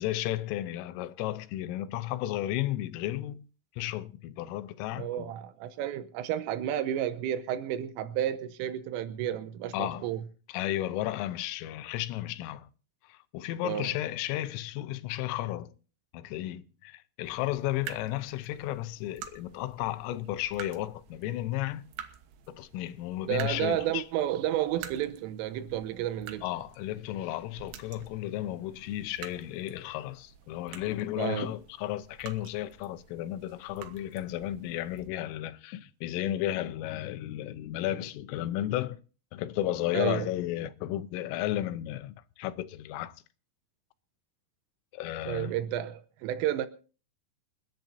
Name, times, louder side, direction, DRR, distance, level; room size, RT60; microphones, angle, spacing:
voice 1, 0.0-3.4 3.8-5.3 9.7-10.1 10.5-12.7 13.1-15.7 16.1-21.8 22.5-24.0 26.4-39.0 39.3-43.1 44.9-45.5, left 14 dB, 85° left, 3.4 m, -33 dB
voice 2, 4.9-10.2 13.6-13.9 23.3-26.4 31.2-31.5 39.9-40.3 45.3-46.7, right 11 dB, 90° right, 3.4 m, -31 dB
sound 1, 17.2-35.1, right 9 dB, 70° right, 2.5 m, -49 dB
29.0 x 10.5 x 2.7 m
omnidirectional pair, 5.7 m